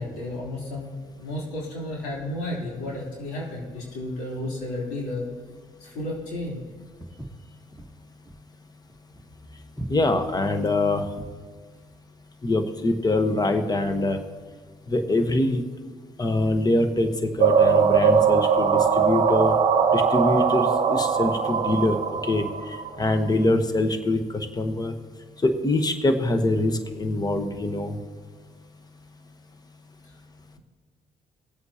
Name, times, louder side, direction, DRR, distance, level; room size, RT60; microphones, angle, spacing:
voice 1, 0.0-5.3 5.8-6.6 30.0-30.1, left 1 dB, 85° left, -3 dB, 3.2 m, -32 dB
Walk footsteps, 7.0-11.5, right 1 dB, 5° right, 1.4 m, -40 dB
voice 2, 9.9-11.1 12.4-14.2 14.9-15.6 16.2-19.5 19.9-24.9 25.4-27.9, left 2 dB, 25° left, 7 dB, 1.2 m, -24 dB
sound 1, 17.4-23.1, right 6 dB, 50° right, 0.9 m, -21 dB
20.0 x 7.8 x 2.9 m, 1.5 s
supercardioid pair, 65°, 16 cm